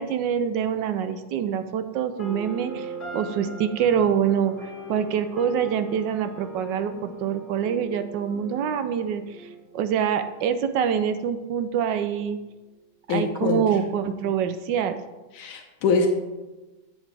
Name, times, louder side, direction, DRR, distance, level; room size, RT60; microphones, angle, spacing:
voice 1, 0.0-9.5 9.7-12.4 13.1-15.0, right 8 dB, 75° right, 9 dB, 1.2 m, -25 dB
sound 1, 2.2-10.2, equal, 25° left, 2.6 m, -40 dB
voice 2, 13.1-13.6 15.4-16.1, left 4 dB, 90° left, 2 dB, 1.6 m, -23 dB
9.9 x 7.3 x 3.4 m, 1.1 s
omnidirectional pair, 2.2 m